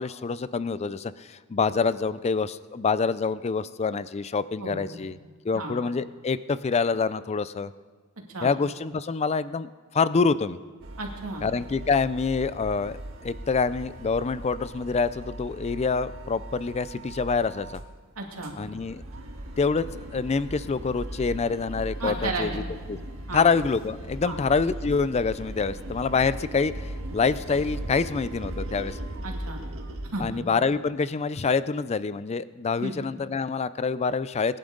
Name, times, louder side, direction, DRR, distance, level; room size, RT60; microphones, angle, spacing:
voice 1, 0.0-5.2 5.4-7.7 8.4-10.6 11.4-17.8 18.6-19.0 19.6-19.9 20.1-22.6 22.9-23.0 23.3-29.0 30.2-34.6, left 4 dB, 30° left, 16 dB, 0.4 m, -26 dB
voice 2, 4.6-5.0 5.5-5.8 8.3-8.5 11.0-11.4 18.2-18.5 22.0-22.6 23.3-23.5 24.2-24.4 29.2-29.6 30.1-30.4 32.8-33.0, right 2 dB, 85° right, 1 dB, 2.4 m, -33 dB
sound 1, 10.8-17.9 18.2-30.2, right 1 dB, 65° right, 1.7 m, -38 dB
23.0 x 10.5 x 3.9 m, 1.5 s
head